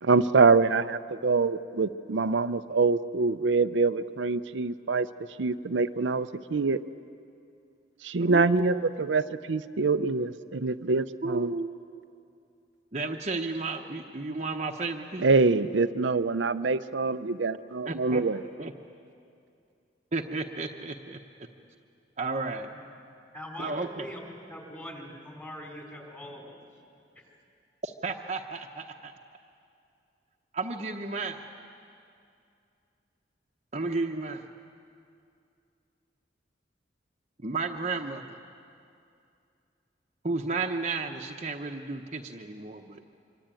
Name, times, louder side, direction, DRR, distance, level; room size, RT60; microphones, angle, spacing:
voice 1, 0.0-5.1 5.4-6.8 8.0-9.2 9.5-11.5 15.2-18.4, right 4 dB, 80° right, 10 dB, 0.6 m, -25 dB
voice 2, 8.2-8.8 11.2-11.7 12.9-15.2 17.8-18.2 18.6-18.7 20.1-21.2 22.2-22.7 23.6-24.1 27.8-29.1 30.5-31.4 33.7-34.4 37.4-38.4 40.2-43.0, right 3 dB, 40° right, 2 dB, 1.0 m, -32 dB
voice 3, 23.3-26.6 27.1-27.2, equal, 15° left, 0 dB, 4.5 m, -42 dB
25.5 x 24.5 x 9.0 m, 2.5 s
head